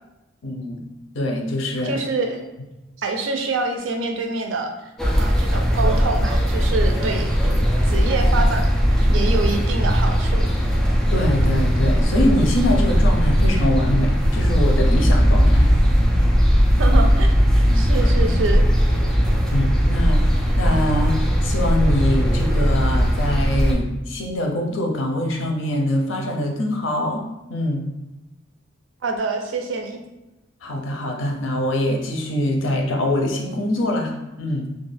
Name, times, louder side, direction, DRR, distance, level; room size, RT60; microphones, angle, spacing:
voice 1, 0.4-0.8 1.1-2.0 11.1-15.7 17.7-17.9 19.5-27.2 27.5-27.8 30.6-34.1 34.4-34.7, left 1 dB, 90° left, 1 dB, 0.6 m, -23 dB
voice 2, 1.8-2.4 3.0-4.7 5.2-10.5 16.8-18.7 29.0-30.0, right 3 dB, 90° right, 4 dB, 0.4 m, -26 dB
sound 1, 5.0-23.8, equal, 5° left, 0.3 m, -18 dB
2.4 x 2.2 x 3.3 m, 0.99 s
head